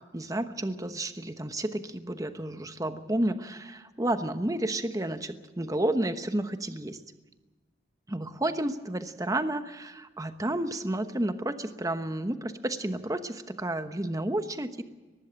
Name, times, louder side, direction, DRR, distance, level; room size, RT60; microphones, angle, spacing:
voice 1, 0.1-7.0 8.1-14.8, right 1 dB, 20° right, 9 dB, 1.0 m, -31 dB
19.5 x 15.0 x 8.8 m, 1.3 s
head